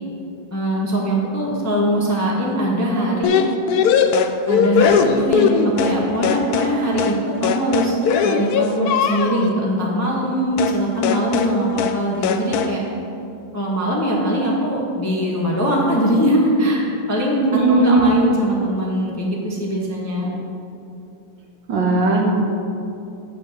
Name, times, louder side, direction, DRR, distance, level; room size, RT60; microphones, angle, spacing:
voice 1, 0.5-3.3 4.5-7.9 8.2-12.8 13.5-16.8 17.1-20.3, equal, 10° left, -4 dB, 0.9 m, -21 dB
sound 1, 3.2-6.0 6.2-6.7 7.0-7.2 7.4-9.5 10.6-10.8 11.0-11.5 11.8-12.0 12.2-12.7, left 7 dB, 90° left, 0.8 m, -19 dB
voice 2, 17.4-18.1 21.7-22.3, right 3 dB, 70° right, 0 dB, 1.8 m, -17 dB
9.5 x 4.6 x 7.3 m, 2.7 s
omnidirectional pair, 2.2 m